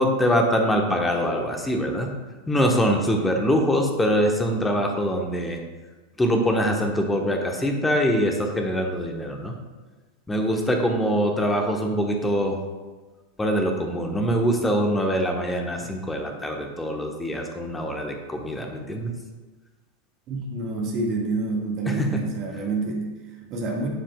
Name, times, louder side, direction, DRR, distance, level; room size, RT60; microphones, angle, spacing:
voice 1, 0.0-2.2 2.5-5.6 6.2-9.6 10.3-12.6 13.4-19.1 21.9-22.2, equal, 10° left, 2 dB, 1.2 m, -23 dB
voice 2, 20.3-23.9, right 3 dB, 35° right, -1 dB, 1.8 m, -28 dB
11.5 x 7.3 x 2.4 m, 1.3 s
figure-of-eight pair, 90°, 0 cm